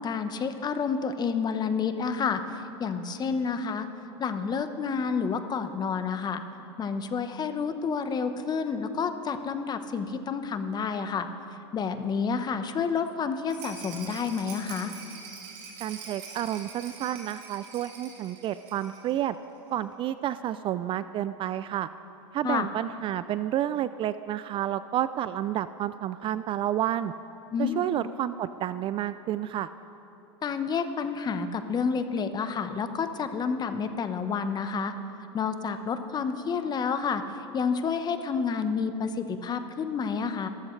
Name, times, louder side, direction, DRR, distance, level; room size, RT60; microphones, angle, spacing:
voice 1, 0.0-3.9 4.2-6.4 6.8-11.3 11.7-14.9 22.4-22.7 27.5-27.8 30.4-34.9 35.3-40.5, left 5 dB, 30° left, 9 dB, 1.0 m, -29 dB
Rattle, 13.5-19.2 19.4-19.5 19.8-19.9, right 5 dB, 65° right, 4.0 m, -44 dB
voice 2, 15.8-19.4 19.7-21.9 22.3-27.1 27.6-29.7, right 12 dB, 35° right, 14 dB, 0.4 m, -30 dB
26.0 x 14.0 x 3.2 m, 3.0 s
hypercardioid pair, 105°, 15 cm